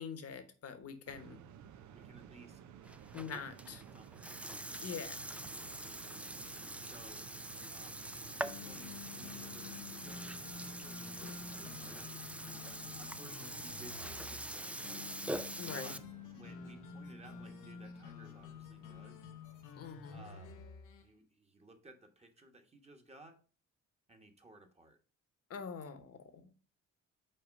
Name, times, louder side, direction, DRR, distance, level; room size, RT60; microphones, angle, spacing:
voice 1, 0.0-1.4 3.1-3.8 4.8-5.3 11.2-11.4 15.6-15.9 19.7-20.3 25.5-26.5, left 6 dB, 55° left, 1.2 m, -45 dB
sound 1, 1.1-20.1, right 8 dB, 70° right, 0.7 m, -55 dB
voice 2, 1.9-2.6 3.6-4.3 4.8-5.1 6.7-7.3 7.7-12.1 13.0-15.1 15.7-16.0 16.3-19.2 20.1-20.6 21.0-23.4 24.1-25.0, right 2 dB, 20° right, 1.3 m, -58 dB
Burping eructation, 2.8-16.0, right 1 dB, 5° right, 0.3 m, -44 dB
sound 2, 8.2-21.1, left 6 dB, 90° left, 1.1 m, -50 dB
5.8 x 4.4 x 5.2 m
cardioid pair, 90°, 30 cm